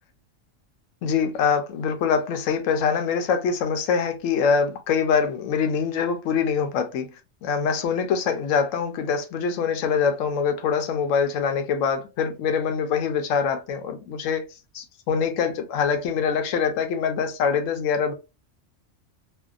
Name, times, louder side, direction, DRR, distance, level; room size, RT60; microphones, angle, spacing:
voice 1, 1.0-7.1 7.4-14.5 14.7-18.1, left 6 dB, 85° left, 0.9 m, -24 dB
2.6 x 2.1 x 2.4 m
omnidirectional pair, 1.3 m